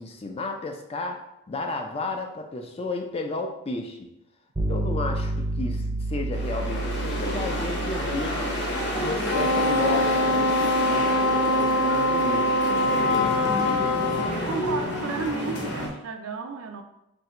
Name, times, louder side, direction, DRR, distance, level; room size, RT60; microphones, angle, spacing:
voice 1, 0.0-4.1 4.7-8.6 9.0-13.9, left 3 dB, 30° left, 3 dB, 0.4 m, -33 dB
sound 1, 4.6-14.4, right 2 dB, 25° right, 0.6 m, -32 dB
sound 2, 6.3-15.9, left 1 dB, 55° left, 0.8 m, -30 dB
Wind instrument woodwind instrument, 9.3-14.3, left 1 dB, 85° left, 0.5 m, -23 dB
voice 2, 14.3-16.8, right 5 dB, 80° right, 5 dB, 0.4 m, -33 dB
2.8 x 2.6 x 4.3 m, 0.84 s
head